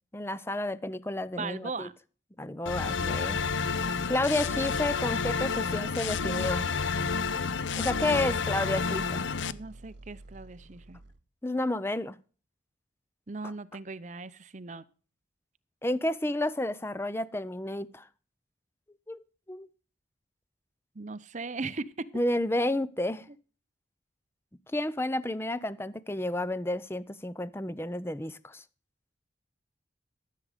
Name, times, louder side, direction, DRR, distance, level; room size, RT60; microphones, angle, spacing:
voice 1, 0.1-1.9 2.4-3.4 4.1-6.6 7.8-9.3 11.4-12.2 13.4-13.5 15.8-18.0 19.1-19.2 19.5-19.7 22.1-23.3 24.7-28.6, left 1 dB, 15° left, 0.5 m, -31 dB
voice 2, 1.3-1.9 9.5-11.0 13.3-14.8 21.0-22.1, right 3 dB, 40° right, 0.7 m, -38 dB
sound 1, 2.7-9.5, left 5 dB, 85° left, 0.6 m, -30 dB
sound 2, 3.4-5.4 6.9-11.2, right 2 dB, 75° right, 1.0 m, -50 dB
13.5 x 7.6 x 5.0 m
head